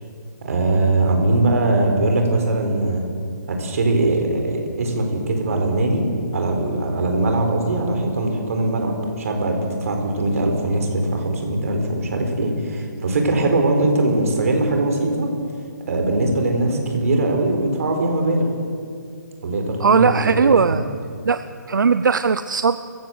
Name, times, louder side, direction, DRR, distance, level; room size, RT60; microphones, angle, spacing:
voice 1, 0.4-3.1 3.5-6.1 6.3-15.3 15.9-18.5 19.4-20.8, right 2 dB, 50° right, 3 dB, 4.6 m, -21 dB
voice 2, 19.8-20.8 21.3-22.8, right 5 dB, 80° right, 12 dB, 0.7 m, -18 dB
24.0 x 15.5 x 7.9 m, 2.3 s
hypercardioid pair, 165°, 10 cm